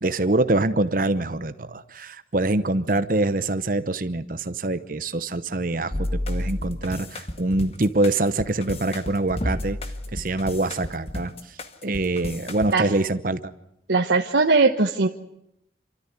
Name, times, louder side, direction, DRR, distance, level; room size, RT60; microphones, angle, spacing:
voice 1, 0.0-9.8 10.1-11.3 11.8-13.4, right 2 dB, 45° right, 11 dB, 0.9 m, -24 dB
sound 1, 5.9-12.7, left 1 dB, 35° left, 1.5 m, -31 dB
voice 2, 13.9-15.1, right 3 dB, 75° right, 2 dB, 1.2 m, -19 dB
28.5 x 13.5 x 9.7 m, 0.81 s
head